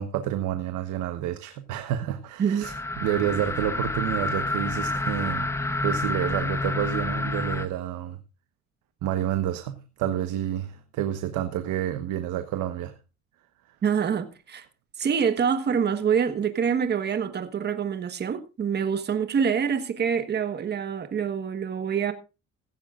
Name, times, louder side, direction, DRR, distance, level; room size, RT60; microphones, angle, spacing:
voice 1, 0.0-5.5 5.8-8.2 9.0-12.9, right 11 dB, 85° right, 1.2 m, -29 dB
sound 1, 2.6-7.7, left 2 dB, 10° left, 0.8 m, -29 dB
voice 2, 13.8-14.6 15.0-22.1, right 7 dB, 35° right, 1.4 m, -26 dB
16.0 x 15.0 x 2.5 m
cardioid pair, 145°, 30 cm